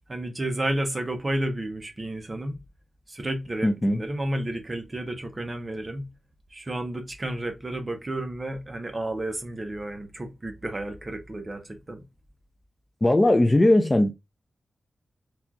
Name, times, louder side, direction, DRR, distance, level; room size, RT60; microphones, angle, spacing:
voice 1, 0.1-2.6 3.1-6.1 6.5-12.0, right 1 dB, 25° right, 0.7 m, -31 dB
voice 2, 3.6-4.0 13.0-14.1, left 1 dB, 20° left, 0.4 m, -19 dB
4.2 x 2.3 x 2.7 m
wide cardioid pair, 155°, 0 cm